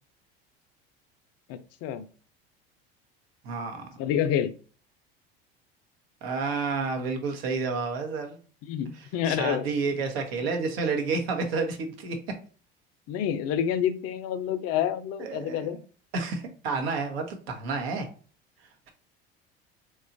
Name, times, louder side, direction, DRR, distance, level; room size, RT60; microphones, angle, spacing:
voice 1, 1.5-2.1 4.0-4.5 8.6-9.7 13.1-15.8, left 9 dB, 55° left, 11 dB, 0.4 m, -28 dB
voice 2, 3.4-3.9 6.2-8.4 9.3-12.2 15.2-15.7 16.1-18.1, right 4 dB, 80° right, 3 dB, 0.7 m, -30 dB
2.9 x 2.3 x 2.5 m, 0.40 s
hypercardioid pair, 80°, 30 cm